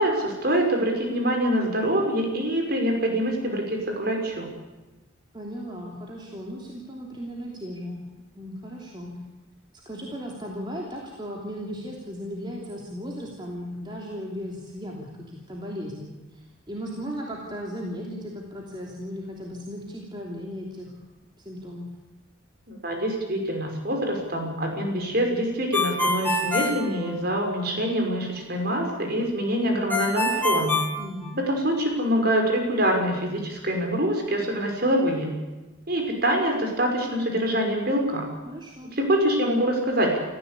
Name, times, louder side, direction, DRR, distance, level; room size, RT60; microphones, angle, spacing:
voice 1, 0.0-4.5 22.7-30.8 31.5-35.3 35.9-38.3 38.9-40.2, equal, 50° right, 2 dB, 5.7 m, -25 dB
voice 2, 5.3-8.0 8.3-9.2 9.8-20.9 21.4-21.9 31.0-31.4 38.4-38.9, equal, 20° right, -2 dB, 3.1 m, -36 dB
Ringtone, 25.7-27.6 29.9-31.8, left 2 dB, 10° left, 2.5 m, -26 dB
28.5 x 15.0 x 8.4 m, 1.1 s
head